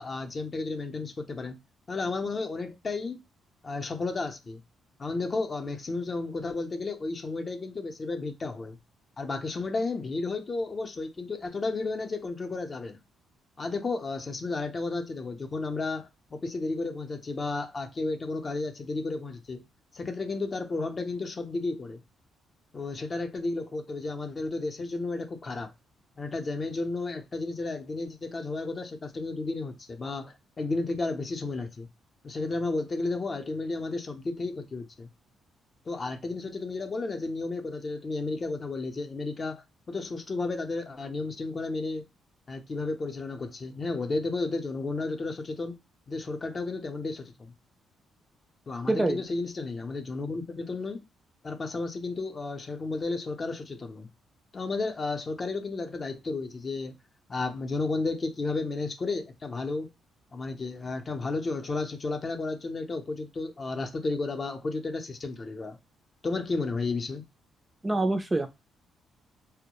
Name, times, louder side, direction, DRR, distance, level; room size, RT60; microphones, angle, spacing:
voice 1, 0.0-1.6 1.9-3.2 3.6-4.6 5.0-8.8 9.2-13.0 13.6-19.6 19.9-22.0 22.7-25.7 26.2-31.9 32.2-35.1 35.9-42.0 42.5-45.8 46.1-47.5 48.7-51.0 51.4-54.1 54.5-56.9 57.3-59.9 60.3-65.8 66.2-67.2, left 3 dB, 35° left, 0.6 m, -33 dB
voice 2, 48.9-49.2 67.8-68.5, right 2 dB, 15° right, 0.4 m, -25 dB
2.2 x 2.0 x 2.9 m
cardioid pair, 90°, 0 cm